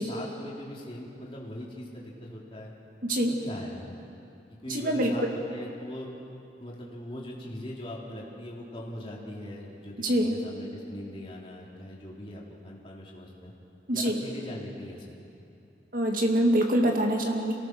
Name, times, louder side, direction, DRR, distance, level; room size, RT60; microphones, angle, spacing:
voice 1, 0.0-2.7 3.2-4.2 4.5-6.1 6.6-13.5 13.9-15.2, left 1 dB, 30° left, -4 dB, 3.7 m, -41 dB
voice 2, 3.0-3.3 4.7-5.1 10.0-10.4 13.9-14.2 15.9-17.5, right 1 dB, 50° right, 2 dB, 2.3 m, -25 dB
27.0 x 19.0 x 6.2 m, 2.6 s
head